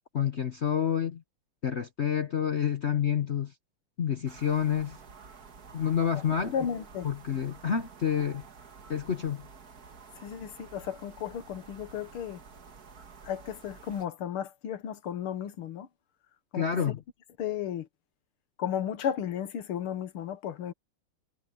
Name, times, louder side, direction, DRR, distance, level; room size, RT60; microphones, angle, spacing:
voice 1, 0.1-1.2 1.6-3.5 4.0-5.0 5.7-6.5 7.0-8.4 8.9-9.4 16.5-17.0, left 8 dB, 55° left, 0.7 m, -28 dB
sound 1, 4.3-14.1, right 5 dB, 45° right, 2.0 m, -50 dB
voice 2, 6.5-7.1 10.2-12.4 13.2-15.9 16.5-16.7 17.4-17.9 18.6-20.7, left 9 dB, 85° left, 2.1 m, -34 dB
omnidirectional pair, 2.3 m